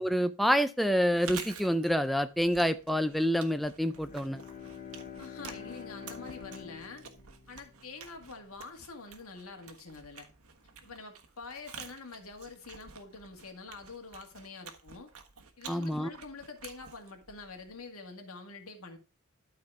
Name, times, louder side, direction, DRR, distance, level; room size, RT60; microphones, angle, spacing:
voice 1, 0.0-4.4 15.7-16.1, equal, ahead, 10 dB, 0.3 m, -27 dB
Chewing mastication, 1.0-17.9, right 6 dB, 90° right, 1.3 m, -49 dB
Bowed string instrument, 3.8-8.4, left 7 dB, 40° left, 2.4 m, -47 dB
voice 2, 5.2-7.1 7.5-10.3 10.8-15.1 15.6-19.0, left 3 dB, 85° left, 5 dB, 2.0 m, -46 dB
12.5 x 4.3 x 4.7 m, 0.34 s
head